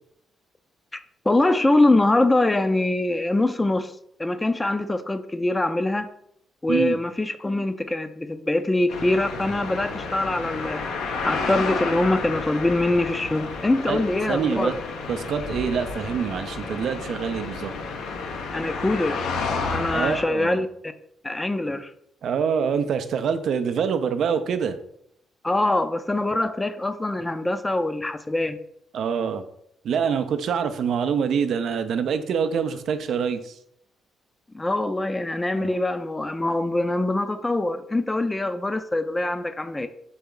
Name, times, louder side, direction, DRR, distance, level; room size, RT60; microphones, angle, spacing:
voice 1, 1.3-3.9 4.2-6.1 6.6-10.8 11.2-14.8 18.5-19.3 19.7-20.9 21.2-21.9 25.4-28.6 34.5-39.9, left 2 dB, 15° left, 0.4 m, -23 dB
sound 1, 8.9-20.2, left 4 dB, 90° left, 0.7 m, -31 dB
voice 2, 14.3-14.7 15.1-17.7 19.9-20.6 22.2-24.8 28.9-29.4 29.8-33.6 35.5-35.8, right 7 dB, 65° right, 0.4 m, -25 dB
4.1 x 3.4 x 3.7 m
cardioid pair, 90°, 0 cm